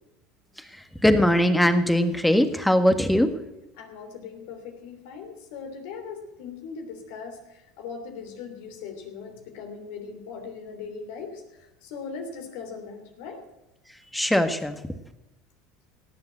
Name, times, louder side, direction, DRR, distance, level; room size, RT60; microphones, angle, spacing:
voice 1, 0.7-3.3 14.1-14.8, equal, 5° left, 9 dB, 1.6 m, -21 dB
voice 2, 3.8-13.4, left 5 dB, 70° left, 4 dB, 3.2 m, -39 dB
18.0 x 7.6 x 7.5 m, 0.93 s
hypercardioid pair, 80°, 0 cm